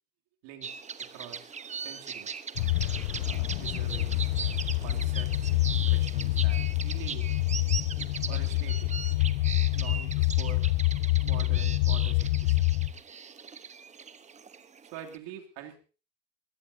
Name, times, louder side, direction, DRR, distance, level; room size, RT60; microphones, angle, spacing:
sound 1, 0.6-15.2, right 6 dB, 20° right, 1.0 m, -40 dB
voice 1, 1.0-2.4 3.2-4.3 4.8-7.3 8.3-8.9 9.7-10.7 11.2-12.7 14.8-15.8, right 10 dB, 65° right, 3 dB, 2.9 m, -45 dB
sound 2, 2.6-12.9, left 19 dB, 65° left, 1.0 m, -27 dB
22.5 x 16.5 x 2.8 m, 0.36 s
hypercardioid pair, 100°, 37 cm